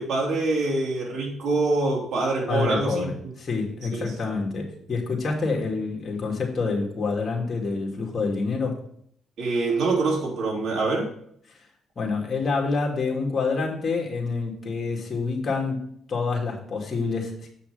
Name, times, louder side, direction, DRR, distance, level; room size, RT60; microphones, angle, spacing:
voice 1, 0.0-3.1 3.9-4.1 9.4-11.1, right 3 dB, 65° right, -2 dB, 3.4 m, -25 dB
voice 2, 2.5-8.8 12.0-15.8 16.1-17.5, left 4 dB, 40° left, 0 dB, 2.6 m, -27 dB
8.0 x 5.8 x 5.1 m, 0.66 s
cardioid pair, 90°, 0 cm